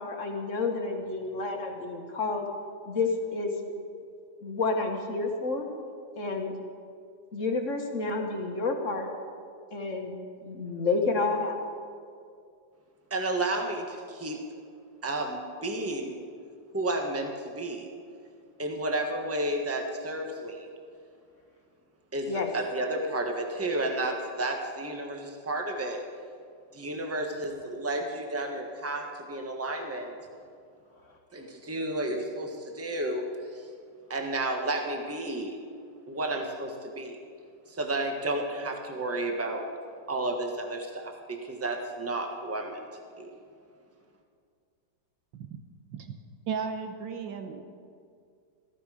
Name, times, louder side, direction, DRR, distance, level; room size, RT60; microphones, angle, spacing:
voice 1, 0.0-2.5 2.8-3.5 4.4-5.7 6.2-6.5 7.3-9.1 9.7-10.1 10.4-11.6 22.3-22.5, left 3 dB, 45° left, 2 dB, 1.7 m, -30 dB
voice 2, 13.1-14.4 15.0-16.2 16.7-17.9 18.6-20.7 22.1-26.0 26.7-30.1 31.3-33.3 33.5-33.7 34.1-35.6 36.1-37.2 37.7-39.7 40.1-42.8 43.2-43.3, right 2 dB, 10° right, 3 dB, 1.2 m, -32 dB
voice 3, 46.5-47.7, right 6 dB, 85° right, 6 dB, 1.6 m, -35 dB
15.0 x 14.5 x 5.0 m, 2.3 s
omnidirectional pair, 2.0 m